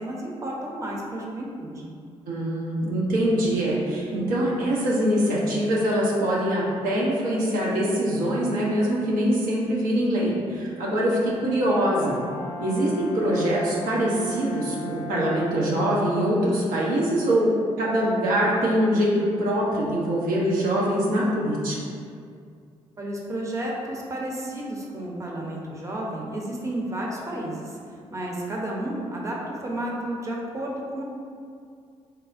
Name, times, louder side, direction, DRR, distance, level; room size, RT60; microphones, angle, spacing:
voice 1, 0.0-1.9 23.0-27.8 28.1-31.0, right 1 dB, 20° right, -2 dB, 0.7 m, -32 dB
voice 2, 2.3-12.2 12.6-17.5 17.8-21.8, equal, 75° right, -5 dB, 0.6 m, -23 dB
Brass instrument, 11.5-15.9, equal, 25° left, 0.8 m, -36 dB
4.1 x 2.0 x 2.5 m, 2.3 s
hypercardioid pair, 45°, 15 cm